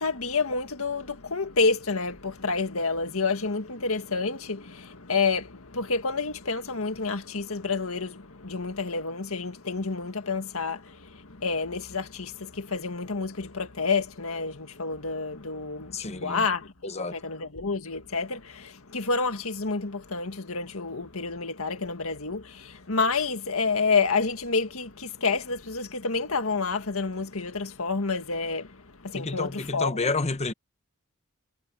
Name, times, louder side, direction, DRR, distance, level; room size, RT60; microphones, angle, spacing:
voice 1, 0.0-30.1, left 4 dB, 75° left, 1.9 m, -29 dB
voice 2, 15.9-16.5 16.8-17.2 29.1-30.5, left 3 dB, 30° left, 1.0 m, -30 dB
head